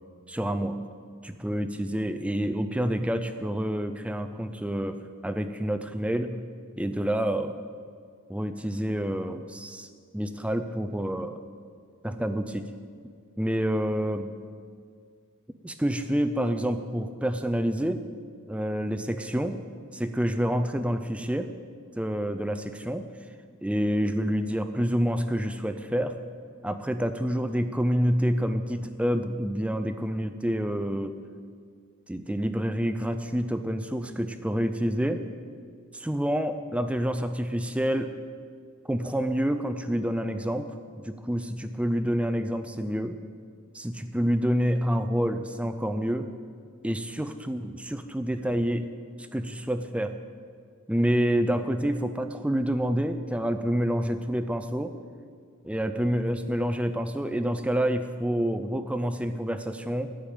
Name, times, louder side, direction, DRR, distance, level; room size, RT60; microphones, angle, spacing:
voice 1, 0.3-0.9 1.2-6.5 6.7-7.5 8.3-9.9 10.1-11.4 12.0-12.7 13.4-14.3 15.6-18.0 18.5-19.6 19.9-21.5 22.0-23.1 23.6-26.2 26.6-31.2 32.1-35.2 35.9-38.1 38.9-40.7 41.0-43.2 43.7-46.3 46.8-48.9 49.2-50.2 50.9-54.9 55.6-60.1, equal, 5° right, 9 dB, 0.4 m, -28 dB
13.0 x 5.1 x 9.0 m, 2.1 s
head